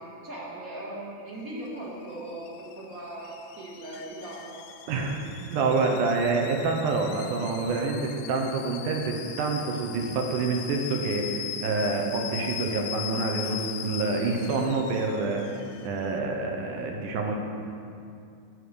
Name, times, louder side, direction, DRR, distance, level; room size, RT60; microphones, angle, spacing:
voice 1, 0.0-4.7, right 1 dB, 40° right, -5 dB, 1.2 m, -39 dB
Alarm / Boiling, 1.3-16.2, left 10 dB, 80° left, 1.8 m, -40 dB
voice 2, 4.9-17.4, right 3 dB, 75° right, 1 dB, 2.3 m, -27 dB
13.0 x 4.9 x 6.8 m, 2.5 s
omnidirectional pair, 3.9 m